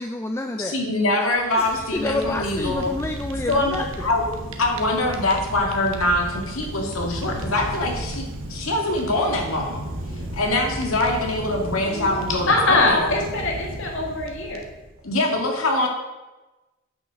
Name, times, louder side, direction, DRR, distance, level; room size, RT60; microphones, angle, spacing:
voice 1, 0.0-0.8 1.5-4.1 10.1-10.4, left 2 dB, 10° left, 5 dB, 0.4 m, -29 dB
voice 2, 0.7-2.9 3.5-4.2 4.6-9.8 10.3-13.1 15.0-15.9, left 2 dB, 85° left, 1 dB, 2.0 m, -23 dB
Fire, 1.4-15.0, right 1 dB, 70° right, 1.2 m, -34 dB
voice 3, 11.8-14.6, left 2 dB, 65° left, 1 dB, 2.0 m, -23 dB
8.8 x 6.2 x 6.3 m, 1.1 s
head